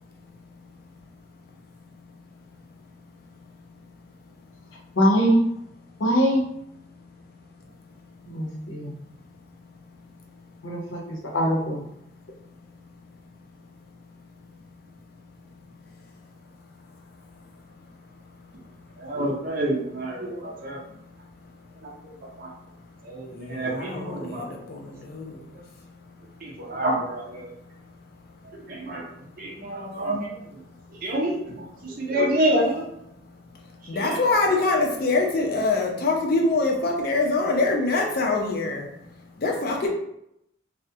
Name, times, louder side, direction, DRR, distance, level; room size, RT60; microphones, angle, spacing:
voice 1, 5.0-5.4 6.0-6.4 8.2-8.9 10.6-11.8, equal, 90° left, -1 dB, 0.7 m, -22 dB
voice 2, 19.0-20.8 22.4-22.5 23.1-24.5 26.4-27.5 28.7-29.0 29.4-30.3 31.0-31.3 31.8-32.8 34.0-34.2, right 1 dB, 50° right, -3 dB, 0.6 m, -27 dB
voice 3, 23.4-25.4 33.9-38.9 39.4-39.9, left 3 dB, 50° left, 1 dB, 0.4 m, -24 dB
2.3 x 2.0 x 2.7 m, 0.78 s
head